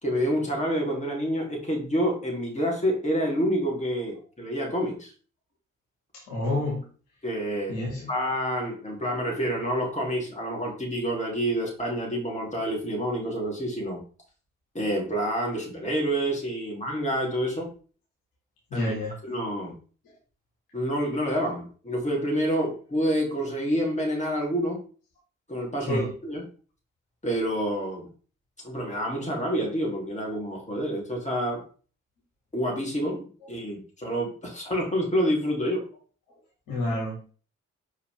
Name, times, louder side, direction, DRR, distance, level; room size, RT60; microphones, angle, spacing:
voice 1, 0.0-5.1 7.2-14.0 14.7-17.7 18.7-18.9 19.2-19.7 20.7-24.8 25.5-26.4 27.2-28.1 28.6-31.6 32.5-35.8, equal, 20° left, -1 dB, 3.2 m, -28 dB
voice 2, 6.3-6.8 7.7-8.1 18.7-19.2 25.9-26.1 36.7-37.3, left 1 dB, 65° left, -3 dB, 2.1 m, -29 dB
5.5 x 4.8 x 3.5 m, 0.39 s
figure-of-eight pair, 40°, 35 cm